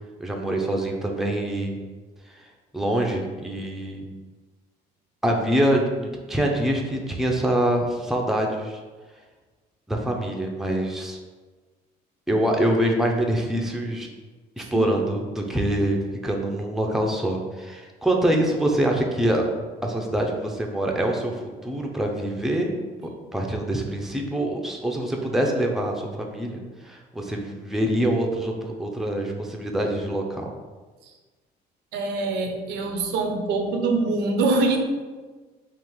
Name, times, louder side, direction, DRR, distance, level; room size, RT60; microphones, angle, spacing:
voice 1, 0.2-1.8 2.3-2.4 2.7-4.1 5.2-8.8 9.9-11.2 12.3-14.1 14.6-16.0 16.2-19.5 19.8-22.7 23.3-30.5, right 1 dB, ahead, 1 dB, 0.5 m, -25 dB
voice 2, 31.9-34.8, right 3 dB, 80° right, 4 dB, 0.7 m, -24 dB
3.7 x 2.5 x 4.5 m, 1.3 s
cardioid pair, 110°, 17 cm